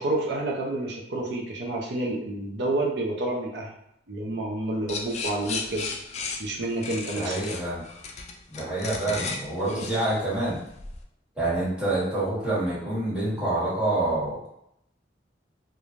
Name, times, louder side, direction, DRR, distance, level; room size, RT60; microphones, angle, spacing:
voice 1, 0.0-3.7 4.1-5.9 6.4-7.4, right 2 dB, 65° right, -1 dB, 0.6 m, -29 dB
sound 1, 4.9-11.0, left 4 dB, 40° left, 0.3 m, -35 dB
voice 2, 7.1-7.8 8.5-10.6 11.3-14.5, right 2 dB, 5° right, -10 dB, 1.4 m, -27 dB
3.1 x 2.2 x 2.5 m, 0.76 s
head